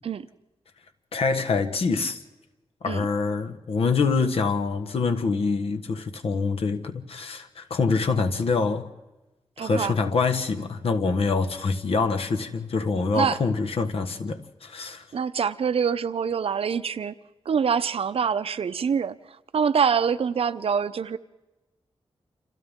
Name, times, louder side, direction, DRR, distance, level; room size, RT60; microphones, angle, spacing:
voice 1, 1.1-2.2 2.8-8.9 9.6-15.1, left 4 dB, 70° left, 1.4 m, -25 dB
voice 2, 9.6-9.9 13.1-13.4 15.1-17.2 17.5-19.2 19.5-21.2, right 6 dB, 70° right, 0.7 m, -25 dB
29.5 x 26.5 x 3.7 m
wide cardioid pair, 170°, 10 cm